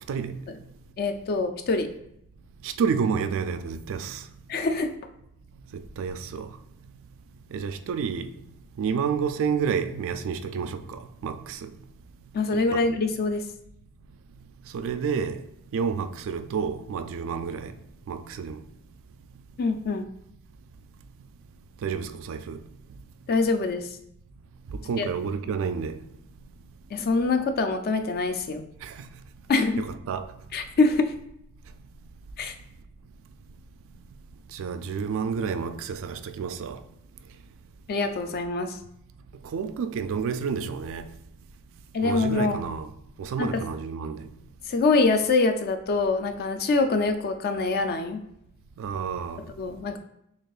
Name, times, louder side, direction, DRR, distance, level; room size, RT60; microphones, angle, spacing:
voice 1, 1.0-1.9 4.5-4.9 12.3-13.5 19.6-20.1 23.3-24.0 25.0-25.1 26.9-28.7 29.5-29.8 30.5-31.1 32.4-32.5 37.9-38.8 41.9-42.6 43.4-43.6 44.7-48.2 49.5-50.0, left 3 dB, 45° left, 0.4 m, -24 dB
voice 2, 2.6-4.2 5.7-6.5 7.5-8.3 8.8-11.7 12.5-12.8 14.7-15.4 15.7-17.7 18.1-18.6 21.8-22.6 24.7-26.0 28.8-28.9 29.8-30.3 34.5-36.8 39.5-41.1 42.0-42.9 43.2-44.3 48.8-49.4, right 6 dB, 60° right, 0.3 m, -30 dB
6.3 x 2.4 x 2.3 m
head